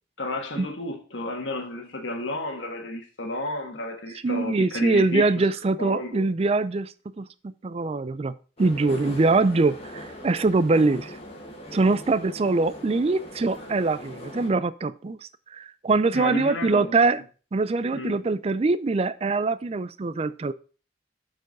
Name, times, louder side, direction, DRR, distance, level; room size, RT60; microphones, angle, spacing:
voice 1, 0.2-5.5 5.8-6.2 16.1-17.2 17.9-18.2, left 2 dB, 90° left, 1.5 m, -32 dB
voice 2, 4.2-7.3 7.6-11.1 11.7-15.2 15.5-17.2 17.5-20.5, right 3 dB, 35° right, 0.4 m, -23 dB
sound 1, 8.6-14.5, left 1 dB, 35° left, 1.6 m, -40 dB
7.7 x 4.6 x 5.3 m
head